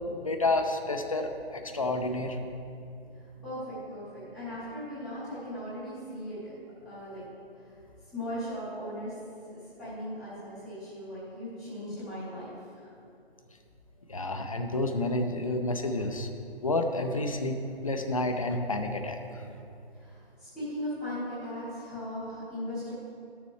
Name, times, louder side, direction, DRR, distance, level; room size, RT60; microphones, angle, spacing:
voice 1, 0.1-2.4 14.1-16.3 16.6-17.6 17.8-19.2, left 2 dB, 35° left, 6 dB, 0.6 m, -29 dB
voice 2, 3.4-6.4 6.8-7.2 8.1-9.1 9.8-12.9 20.0-22.9, equal, ahead, -17 dB, 0.8 m, -38 dB
13.5 x 7.0 x 3.1 m, 2.6 s
hypercardioid pair, 170°, 32 cm